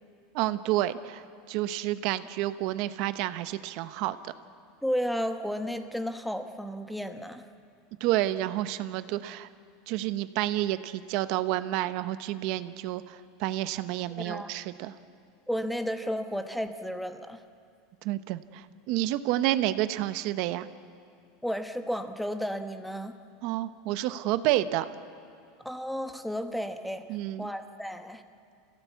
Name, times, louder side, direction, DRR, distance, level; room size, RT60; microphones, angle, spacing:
voice 1, 0.3-1.2 1.5-4.3 8.0-9.5 9.9-14.9 18.0-20.7 23.4-24.8 27.1-27.5, right 14 dB, 50° right, 12 dB, 0.8 m, -29 dB
voice 2, 4.8-7.5 14.2-14.5 15.5-17.4 21.4-23.1 25.6-27.0 27.4-28.2, equal, ahead, 8 dB, 1.0 m, -33 dB
26.5 x 16.5 x 8.3 m, 2.4 s
supercardioid pair, 155°, 0 cm